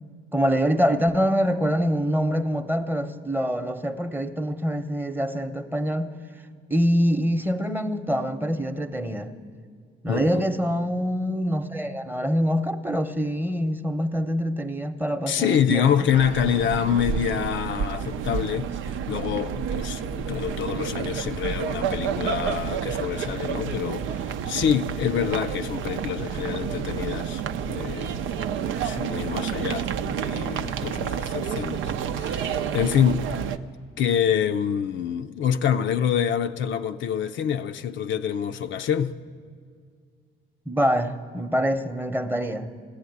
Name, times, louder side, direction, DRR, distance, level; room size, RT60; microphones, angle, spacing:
voice 1, 0.3-6.2 6.7-9.3 10.0-15.9 40.7-42.7, equal, 10° right, 0.9 m, -25 dB
voice 2, 10.1-10.4 15.3-18.7 19.1-27.4 27.7-28.5 28.8-33.3 34.0-39.1, left 8 dB, 70° left, 0.5 m, -26 dB
sound 1, 16.1-33.6, right 7 dB, 85° right, 0.6 m, -30 dB
15.5 x 10.0 x 9.4 m
cardioid pair, 90°, 20 cm